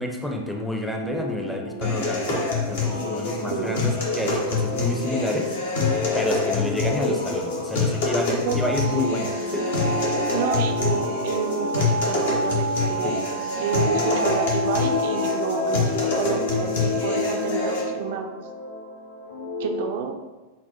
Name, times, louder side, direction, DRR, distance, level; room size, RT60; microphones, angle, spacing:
voice 1, 0.0-5.6 6.1-9.7 13.0-13.2, left 1 dB, ahead, 1 dB, 0.5 m, -29 dB
sound 1, 1.0-14.3 14.7-19.9, left 1 dB, 90° left, 1.2 m, -34 dB
sound 2, 1.8-17.8, left 4 dB, 60° left, 0.8 m, -26 dB
voice 2, 8.3-8.8 10.3-18.3 19.6-20.1, right 7 dB, 50° right, 4 dB, 0.4 m, -29 dB
sound 3, 8.4-15.9, right 3 dB, 90° right, 0.6 m, -30 dB
5.9 x 2.1 x 2.9 m, 1.2 s
figure-of-eight pair, 90°, 0 cm